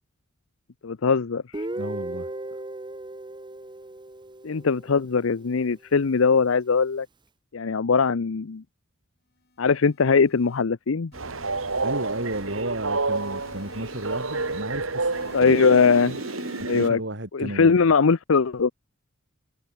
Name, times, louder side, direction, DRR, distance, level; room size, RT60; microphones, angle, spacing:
voice 1, 0.8-1.7 4.4-7.1 7.5-8.6 9.6-11.1 15.3-16.2 16.7-17.0 17.3-18.7, left 5 dB, 80° left, 0.6 m, -21 dB
Guitar, 1.5-5.4, right 1 dB, 25° right, 1.3 m, -36 dB
voice 2, 1.7-2.6 11.8-15.6 16.7-17.8, right 1 dB, 60° right, 5.1 m, -33 dB
sound 1, 9.5-10.6 11.1-12.6 13.1-14.6 15.1-16.6, left 2 dB, 50° left, 5.0 m, -48 dB
Train, 11.1-16.9, right 3 dB, 85° right, 3.2 m, -29 dB
head